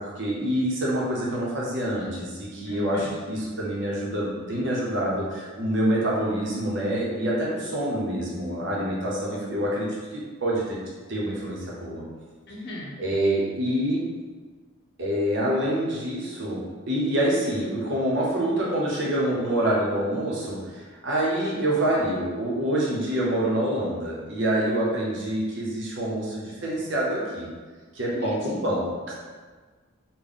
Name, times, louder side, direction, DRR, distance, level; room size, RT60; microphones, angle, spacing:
voice 1, 0.0-10.8 11.1-12.0 13.0-14.0 15.0-27.5 27.9-29.1, right 1 dB, 65° right, -4 dB, 0.9 m, -26 dB
voice 2, 2.7-3.1 12.5-12.9 28.1-28.6, left 2 dB, 55° left, -4 dB, 0.8 m, -36 dB
3.5 x 2.2 x 3.8 m, 1.4 s
head